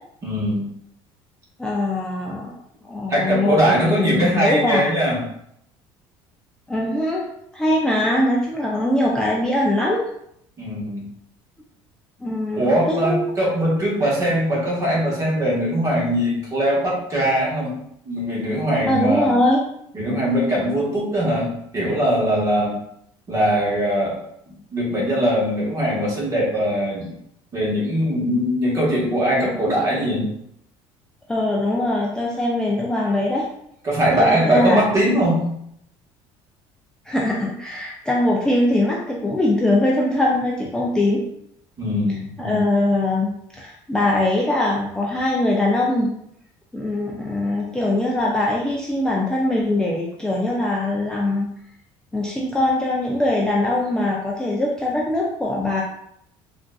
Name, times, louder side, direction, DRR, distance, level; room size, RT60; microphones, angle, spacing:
voice 1, 0.2-0.6 3.1-5.2 10.6-11.1 12.6-17.7 18.0-19.3 19.9-22.7 23.3-24.1 24.5-27.1 27.5-30.3 33.8-35.4 41.8-42.7, equal, 30° right, -5 dB, 1.3 m, -21 dB
voice 2, 1.6-2.5 2.9-4.9 6.7-7.3 7.5-10.0 12.2-13.3 18.9-19.6 31.3-33.4 34.2-34.9 37.1-41.2 42.4-46.1 46.7-51.5 52.1-55.8, left 1 dB, 5° left, -4 dB, 0.4 m, -22 dB
3.6 x 2.5 x 2.3 m, 0.73 s
cardioid pair, 130°, 10 cm